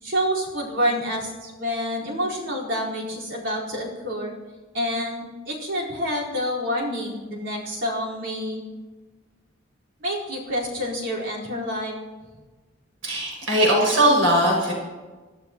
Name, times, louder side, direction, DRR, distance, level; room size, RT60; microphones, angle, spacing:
voice 1, 0.0-4.3 4.7-8.6 10.0-11.9, equal, 65° right, -5 dB, 4.6 m, -28 dB
voice 2, 13.0-14.7, right 1 dB, 85° right, -2 dB, 6.5 m, -19 dB
26.5 x 17.5 x 3.1 m, 1.3 s
head